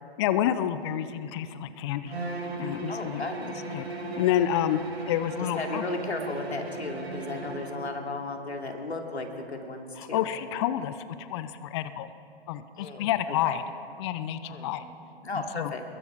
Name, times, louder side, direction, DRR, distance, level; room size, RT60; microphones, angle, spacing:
voice 1, 0.2-2.2 2.6-3.9 4.2-4.8 5.1-5.8 10.0-12.1 12.5-13.6 14.0-14.9 15.3-15.7, left 11 dB, 25° left, 13 dB, 0.7 m, -29 dB
Bowed string instrument, 2.1-7.9, right 2 dB, 75° right, 3.8 m, -37 dB
voice 2, 2.9-3.4 5.6-10.3 12.7-13.1 13.4-13.5 14.4-14.7 15.2-15.8, left 3 dB, 80° left, 2 dB, 3.2 m, -35 dB
25.0 x 22.0 x 5.0 m, 2.5 s
figure-of-eight pair, 130°, 32 cm